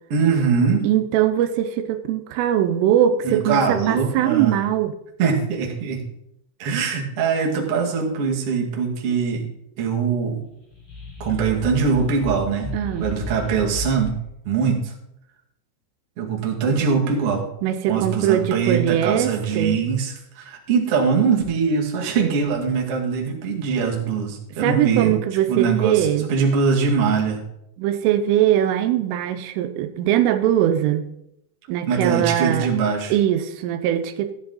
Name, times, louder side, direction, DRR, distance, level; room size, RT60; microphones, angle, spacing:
voice 1, 0.1-0.9 3.2-4.6 5.2-6.0 6.6-9.5 9.8-10.4 11.2-12.7 13.0-14.2 14.5-14.9 16.2-17.4 17.9-25.2 25.5-27.4 31.9-33.1, right 5 dB, 45° right, -1 dB, 1.9 m, -22 dB
voice 2, 0.8-4.9 12.7-13.1 17.6-19.8 24.6-26.3 27.8-31.1 31.7-32.7 33.1-34.3, right 11 dB, 85° right, 9 dB, 3.2 m, -21 dB
sound 1, 10.6-14.3, left 2 dB, 40° left, 2.6 m, -33 dB
14.5 x 9.5 x 4.0 m, 0.80 s
omnidirectional pair, 5.8 m